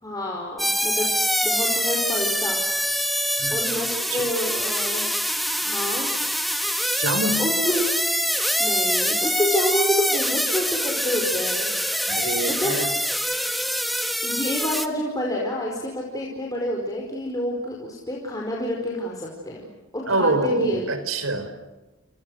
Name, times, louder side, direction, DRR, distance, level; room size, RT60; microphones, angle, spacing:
voice 1, 0.0-1.1 1.4-2.6 3.5-5.1 5.6-6.1 7.4-7.9 8.6-11.7 12.0-12.8 14.2-20.9, left 1 dB, 15° left, -2 dB, 5.0 m, -28 dB
sound 1, 0.6-14.9, equal, ahead, 1.7 m, -24 dB
voice 2, 7.0-7.4 12.1-12.9 20.1-21.5, right 2 dB, 75° right, 10 dB, 4.2 m, -25 dB
29.5 x 29.5 x 6.6 m, 1.1 s
head